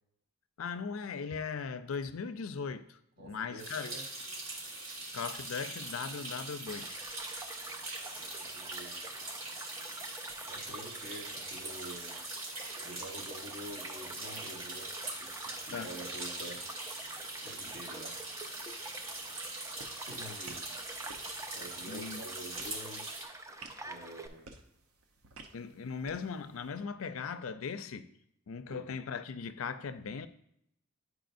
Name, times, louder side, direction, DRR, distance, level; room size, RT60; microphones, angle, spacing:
voice 1, 0.6-3.9 5.1-7.1 15.7-15.9 21.9-22.2 25.5-28.1 28.5-30.3, left 5 dB, 70° left, 0.5 m, -39 dB
voice 2, 3.2-4.1 8.0-9.4 10.5-14.9 15.2-16.7 17.4-18.2 20.1-20.7 21.5-23.2 23.8-24.5 28.7-28.9, equal, 45° right, 1.1 m, -48 dB
sound 1, 3.6-23.2, right 2 dB, 70° right, 2.2 m, -42 dB
Child speech kid speaking / Stream / Car passing by, 6.7-24.3, right 2 dB, 15° right, 0.4 m, -48 dB
sound 2, 19.7-26.7, right 4 dB, 90° right, 0.8 m, -55 dB
10.0 x 4.8 x 2.6 m
head